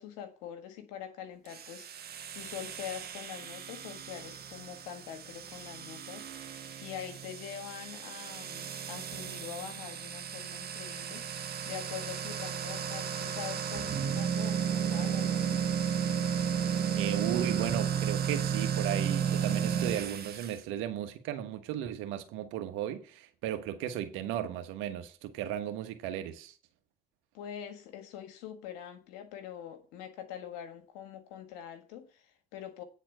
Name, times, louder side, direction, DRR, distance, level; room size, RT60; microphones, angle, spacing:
voice 1, 0.0-11.2 11.7-15.6 27.3-32.8, left 9 dB, 85° left, 1.7 m, -44 dB
sound 1, 1.5-20.6, right 8 dB, 50° right, 1.5 m, -34 dB
voice 2, 16.9-26.5, right 11 dB, 75° right, 1.3 m, -35 dB
9.4 x 4.3 x 7.6 m
hypercardioid pair, 65°, 20 cm